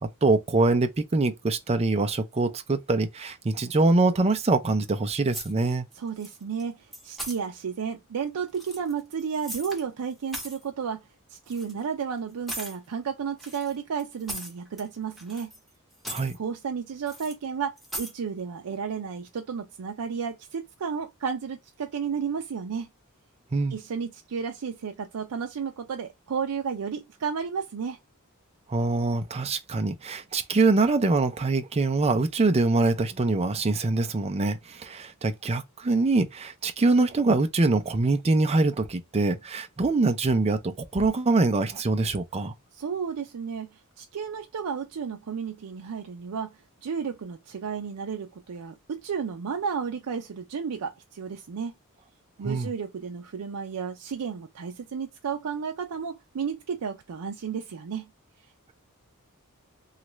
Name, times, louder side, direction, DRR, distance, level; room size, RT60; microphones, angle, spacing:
voice 1, 0.0-5.9 16.1-16.4 23.5-23.8 28.7-42.5 52.4-52.7, right 3 dB, 30° right, 0.5 m, -24 dB
sound 1, 5.3-5.9 6.2-6.6 6.9-7.4 8.5-9.8 10.1-10.6 11.5-11.7 12.5-12.8 13.4-14.9 15.2-15.7 15.9-16.4 17.1-17.3 17.8-18.1, right 1 dB, ahead, 1.1 m, -38 dB
voice 2, 5.9-15.5 16.3-22.9 23.7-28.0 42.7-51.7 52.4-58.1, right 6 dB, 85° right, 0.4 m, -32 dB
3.1 x 2.4 x 2.9 m
head